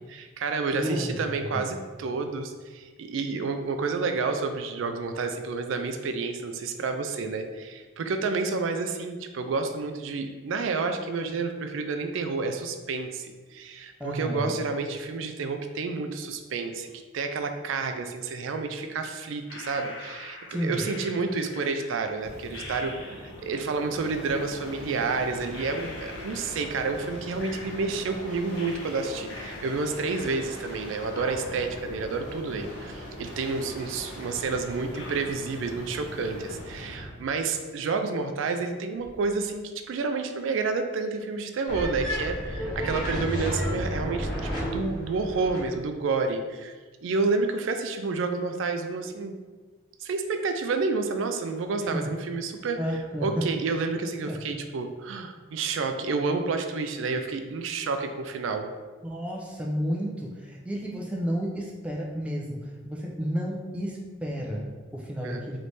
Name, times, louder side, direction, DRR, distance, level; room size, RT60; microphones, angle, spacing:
voice 1, 0.0-46.7 47.0-49.4 50.0-58.7 65.2-65.4, right 4 dB, 75° right, 7 dB, 0.4 m, -30 dB
voice 2, 0.7-1.6 14.0-14.5 20.5-20.8 51.8-52.1 52.8-53.4 54.3-54.4 59.0-62.6 62.8-65.6, equal, 5° right, -2 dB, 0.5 m, -31 dB
sound 1, 19.5-23.6 24.7-24.8 25.5-28.2 28.5-30.8 31.1-33.2 33.5-33.6 34.3-34.4 34.9-36.2 36.5-37.1, left 2 dB, 75° left, 0.8 m, -45 dB
sound 2, 22.1-37.2 38.9-39.4, equal, 55° left, 1.1 m, -41 dB
sound 3, 41.7-45.7, equal, 20° left, 1.3 m, -31 dB
3.2 x 3.2 x 4.0 m, 1.4 s
head